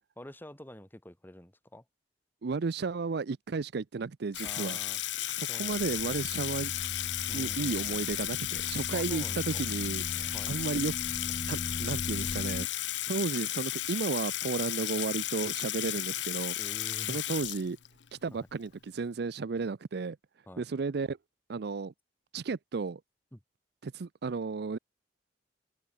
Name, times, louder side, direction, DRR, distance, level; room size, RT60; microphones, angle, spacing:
voice 1, 0.2-1.8 4.4-5.0 5.5-6.2 7.3-7.9 8.9-9.7 10.3-10.5 16.6-17.2 18.3-18.4 20.5-20.7 23.3-23.4, left 1 dB, 10° left, 1.8 m, -47 dB
voice 2, 2.4-4.8 5.3-6.7 7.3-10.9 11.5-12.7 13.1-16.5 17.1-17.8 18.1-20.2 20.6-21.2 21.5-21.9 22.3-23.0 23.8-24.8, right 4 dB, 65° right, 0.5 m, -33 dB
Water tap faucet / Sink (filling or washing), 4.3-18.1, left 14 dB, 80° left, 1.0 m, -34 dB
sound 1, 5.7-12.7, left 3 dB, 30° left, 0.4 m, -40 dB
open air
head